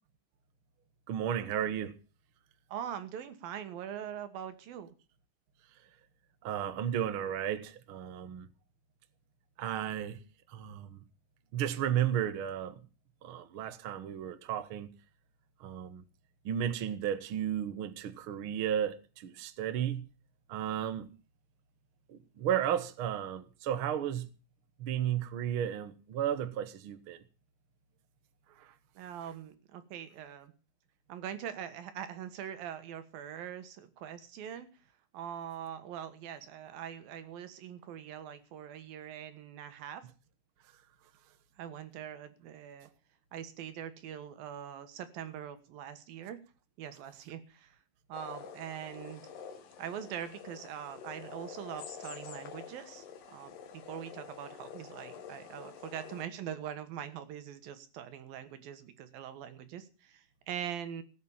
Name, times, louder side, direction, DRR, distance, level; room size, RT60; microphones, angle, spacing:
voice 1, 1.1-1.9 6.4-8.5 9.6-10.2 10.5-11.0 11.5-12.8 13.2-14.9 15.6-16.0 16.4-20.1 20.5-21.1 22.1-24.3 24.8-27.2 28.6-28.7, right 10 dB, 55° right, 1.5 m, -33 dB
voice 2, 2.7-4.9 29.0-30.5 31.1-34.7 35.1-40.1 41.6-42.9 43.3-46.4 46.8-47.8 48.1-49.2 49.8-53.6 53.9-61.0, right 9 dB, 90° right, 3.3 m, -42 dB
sound 1, 48.1-56.3, left 7 dB, 75° left, 3.2 m, -47 dB
17.5 x 8.5 x 7.2 m
omnidirectional pair, 4.0 m